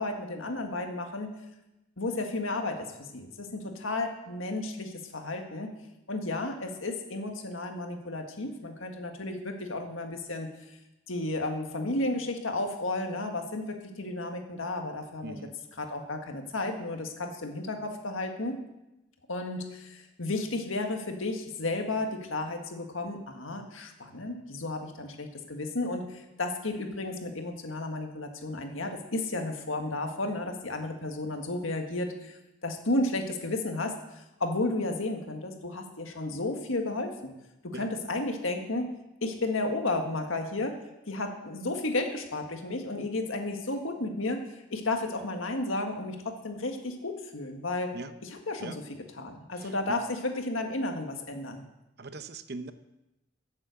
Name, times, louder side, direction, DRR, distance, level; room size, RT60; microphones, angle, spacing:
voice 1, 0.0-1.3 2.0-5.7 6.1-10.5 11.1-15.4 15.8-18.6 19.3-37.4 37.6-38.9 39.2-40.8 41.1-47.9 48.2-48.8 49.2-51.6, left 2 dB, 90° left, 4 dB, 1.8 m, -33 dB
voice 2, 15.2-15.5 37.7-37.9 47.9-48.1 48.6-48.8 49.6-50.0 52.0-52.7, right 3 dB, 55° right, 11 dB, 0.8 m, -40 dB
12.0 x 7.5 x 7.9 m, 0.96 s
head